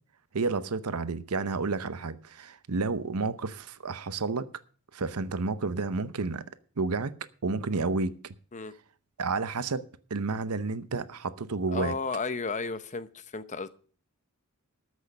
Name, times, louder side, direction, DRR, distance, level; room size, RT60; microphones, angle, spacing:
voice 1, 0.3-4.5 4.9-6.4 6.8-7.2 7.4-8.2 9.2-9.8 10.1-11.9, right 3 dB, 80° right, 0.8 m, -30 dB
voice 2, 11.7-13.7, left 4 dB, 35° left, 0.8 m, -33 dB
13.5 x 6.4 x 7.8 m
head